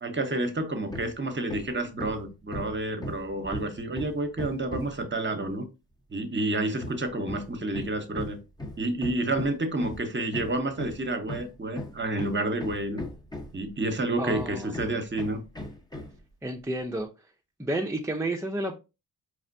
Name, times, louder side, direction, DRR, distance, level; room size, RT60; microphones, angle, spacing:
voice 1, 0.0-5.7 6.1-8.4 8.8-13.0 13.5-15.4, right 2 dB, 25° right, 1.0 m, -29 dB
Hammer, 0.9-1.2 1.5-5.1 6.8-13.7 14.3-16.2, left 1 dB, 10° left, 0.9 m, -38 dB
voice 2, 14.2-14.7 16.4-17.1 17.6-18.8, right 1 dB, 5° right, 0.6 m, -30 dB
4.1 x 3.3 x 2.6 m
hypercardioid pair, 45°, 44 cm